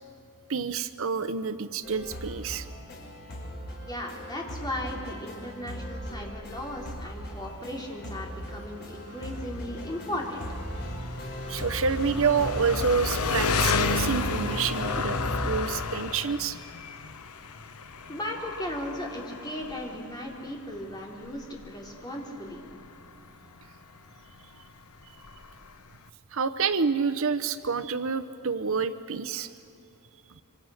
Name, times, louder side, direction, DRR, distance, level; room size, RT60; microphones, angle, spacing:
voice 1, 0.5-2.7 11.5-15.2 15.4-16.6 26.3-29.5, right 5 dB, 65° right, 12 dB, 0.8 m, -28 dB
sound 1, 1.8-15.6, equal, 50° left, 5.5 m, -37 dB
voice 2, 3.8-10.5 18.1-22.7, left 1 dB, 20° left, -1 dB, 3.7 m, -36 dB
Engine, 6.5-26.1, left 4 dB, 80° left, 1.0 m, -34 dB
27.0 x 25.0 x 6.5 m, 2.8 s
head